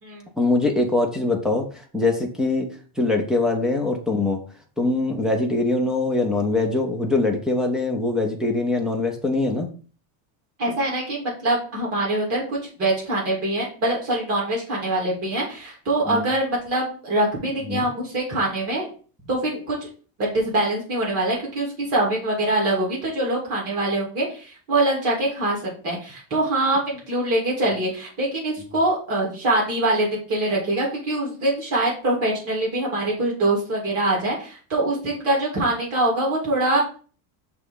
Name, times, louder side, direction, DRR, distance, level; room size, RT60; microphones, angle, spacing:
voice 1, 0.4-1.7 1.9-4.4 4.8-9.7 16.1-16.3 17.7-17.9, left 2 dB, ahead, 2 dB, 0.6 m, -23 dB
voice 2, 10.6-18.9 19.3-19.9 20.2-36.8, right 1 dB, 35° right, -4 dB, 3.1 m, -24 dB
6.2 x 3.4 x 5.4 m, 0.39 s
cardioid pair, 180°, 43 cm